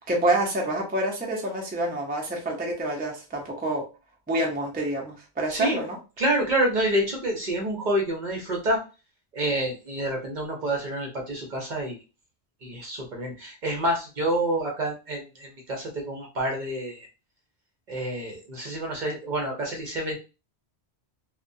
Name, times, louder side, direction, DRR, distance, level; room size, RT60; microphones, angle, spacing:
voice 1, 0.1-3.8 4.3-6.0, right 1 dB, 10° right, -1 dB, 0.5 m, -27 dB
voice 2, 5.5-5.8 6.2-8.8 9.3-12.0 12.6-17.1 17.9-20.2, right 1 dB, 50° right, 0 dB, 0.7 m, -28 dB
2.8 x 2.1 x 2.6 m, 0.31 s
omnidirectional pair, 1.1 m